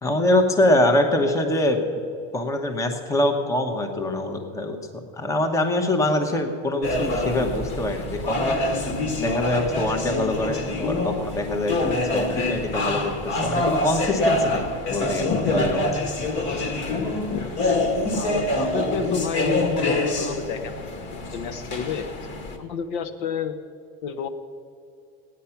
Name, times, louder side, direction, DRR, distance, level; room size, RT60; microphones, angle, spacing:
voice 1, 0.0-1.8 2.3-4.8 5.1-8.9 9.2-15.9, left 1 dB, 10° left, 4 dB, 1.0 m, -24 dB
sound 1, 6.8-22.6, left 1 dB, 40° left, 1.6 m, -26 dB
voice 2, 15.3-15.6 16.5-16.6 17.3-17.6 18.1-20.8 21.1-22.1 22.6-23.5 24.0-24.3, left 6 dB, 60° left, 8 dB, 1.0 m, -29 dB
15.5 x 9.9 x 5.8 m, 2.5 s
supercardioid pair, 155°, 30 cm